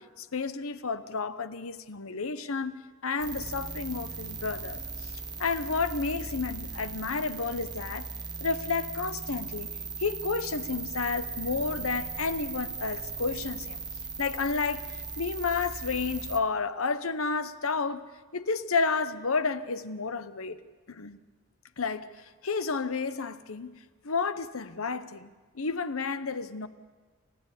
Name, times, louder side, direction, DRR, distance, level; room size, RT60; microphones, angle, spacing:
voice 1, 0.0-2.7 3.0-5.1 5.4-8.1 8.4-9.7 10.0-13.8 14.2-18.0 18.3-20.6 20.9-21.2 21.8-22.1 22.4-23.7 24.0-26.7, left 4 dB, 80° left, 0.9 m, -31 dB
sound 1, 3.2-16.4, right 4 dB, 20° right, 1.1 m, -38 dB
28.5 x 14.5 x 8.3 m
head